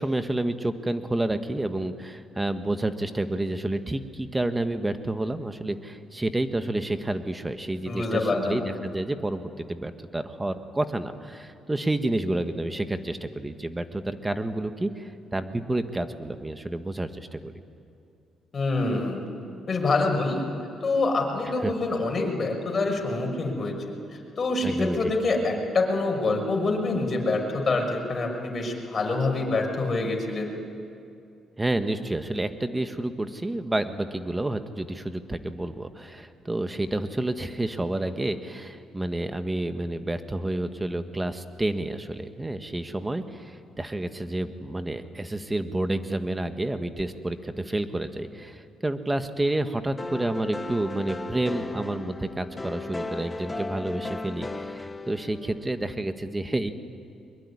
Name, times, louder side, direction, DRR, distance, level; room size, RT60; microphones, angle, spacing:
voice 1, 0.0-17.5 21.6-21.7 24.6-25.0 31.6-56.7, right 1 dB, 15° right, 8 dB, 1.6 m, -29 dB
voice 2, 7.9-8.6 18.5-19.2 19.7-20.5 20.8-23.8 24.4-30.5, left 3 dB, 40° left, 2 dB, 5.9 m, -26 dB
sound 1, 50.0-55.9, left 2 dB, 20° left, 1.3 m, -36 dB
23.5 x 22.0 x 10.0 m, 2.5 s
cardioid pair, 80°, 0 cm